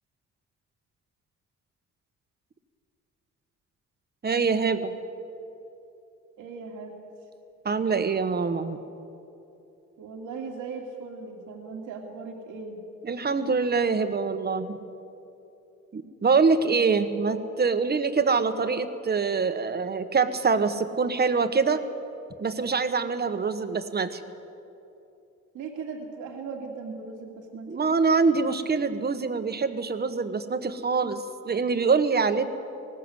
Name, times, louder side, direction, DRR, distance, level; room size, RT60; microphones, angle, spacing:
voice 1, 4.2-4.9 7.6-8.8 13.0-14.8 15.9-21.8 22.4-24.2 27.7-32.4, right 4 dB, 35° right, 9 dB, 1.4 m, -24 dB
voice 2, 6.4-7.0 10.0-12.8 16.7-17.1 25.5-27.7, right 4 dB, 85° right, 1 dB, 2.5 m, -38 dB
20.0 x 18.5 x 8.2 m, 2.8 s
cardioid pair, 90°, 30 cm